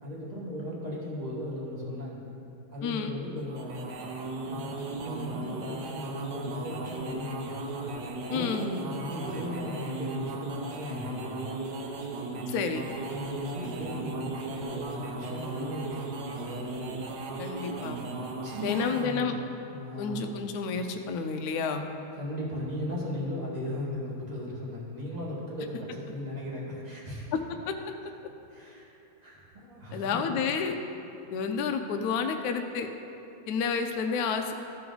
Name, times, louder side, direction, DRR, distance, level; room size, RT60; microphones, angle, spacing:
voice 1, 0.0-2.2 2.7-3.8 4.4-7.8 8.3-11.4 13.1-16.8 18.4-19.4 19.7-20.4 22.2-27.3 28.5-28.9 29.2-30.3, left 1 dB, 25° right, -5 dB, 1.4 m, -37 dB
voice 2, 2.8-3.1 8.3-8.7 12.5-12.9 17.4-18.0 18.6-19.3 20.0-21.9 27.3-27.4 27.7-27.8 29.9-30.8 31.3-32.9 33.5-34.5, left 5 dB, 75° left, 5 dB, 0.8 m, -30 dB
sound 1, 3.4-19.2, right 3 dB, 65° right, 1.2 m, -37 dB
13.5 x 4.6 x 3.9 m, 2.8 s
omnidirectional pair, 2.1 m